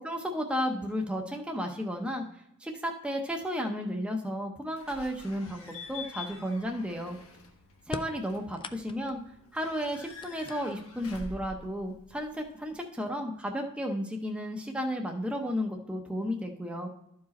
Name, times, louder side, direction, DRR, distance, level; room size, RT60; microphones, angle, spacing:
voice 1, 0.0-2.2 2.6-7.2 7.9-9.2 9.5-16.9, equal, 5° right, 1 dB, 0.7 m, -33 dB
Slam / Squeak / Alarm, 4.8-12.7, left 4 dB, 65° left, 1.4 m, -47 dB
sound 1, 7.8-9.3 9.8-11.0 12.0-12.1 13.1-13.2 13.7-14.2, left 4 dB, 20° left, 0.3 m, -42 dB
12.5 x 4.8 x 4.2 m, 0.80 s
head